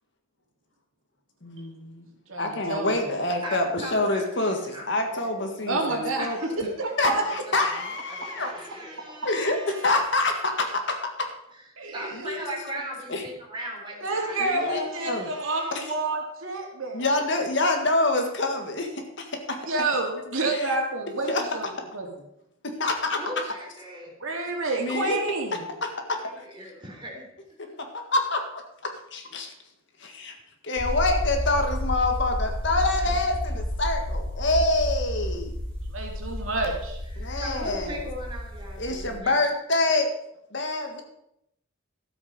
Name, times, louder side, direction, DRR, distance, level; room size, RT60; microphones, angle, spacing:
voice 1, 1.4-1.9 2.4-6.7 7.0-8.5 9.2-11.3 12.2-12.4 13.1-13.2 14.4-15.3 15.7-15.8 16.9-18.9 19.2-19.6 20.5-20.7 21.3-21.4 22.8-23.2 24.8-25.2 25.8-26.2 27.9-28.6 29.1-29.5 30.0-30.3 30.6-35.5 37.2-38.0 38.8-40.1 40.5-41.0, left 2 dB, 60° left, 4 dB, 1.8 m, -26 dB
voice 2, 2.3-2.9 5.7-6.3 6.8-7.2 11.8-12.2 14.0-17.1 19.7-22.1 24.2-25.6 35.9-37.0, right 2 dB, 75° right, 1 dB, 2.6 m, -29 dB
voice 3, 3.2-5.6 6.1-7.2 7.8-10.0 11.5-11.7 11.9-15.9 23.2-24.1 26.2-27.3 33.0-33.2 37.1-39.4, right 1 dB, 25° right, -2 dB, 3.4 m, -39 dB
sound 1, 30.8-39.2, equal, 5° left, 2.9 m, -31 dB
13.0 x 8.0 x 5.4 m, 0.78 s
head